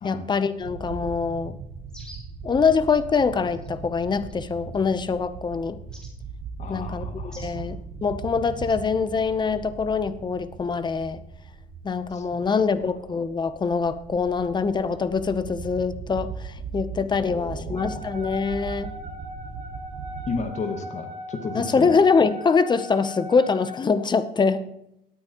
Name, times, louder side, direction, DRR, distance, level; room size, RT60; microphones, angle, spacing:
voice 1, 0.0-1.6 2.4-5.8 6.7-11.2 11.8-18.9 21.5-24.7, left 5 dB, 25° left, 12 dB, 0.8 m, -24 dB
sound 1, 0.6-20.4, right 5 dB, 75° right, 1.3 m, -39 dB
sound 2, 1.9-2.4 3.5-3.7 4.3-4.8 5.9-6.1 7.3-7.6 8.6-8.8, equal, 5° left, 3.0 m, -47 dB
voice 2, 6.6-7.7 12.1-12.9 17.2-18.1 20.3-22.0, left 4 dB, 45° left, 5 dB, 1.7 m, -34 dB
Wind instrument woodwind instrument, 17.8-23.8, equal, 45° right, 3.8 m, -39 dB
17.0 x 9.4 x 3.0 m, 0.80 s
cardioid pair, 110°, 17 cm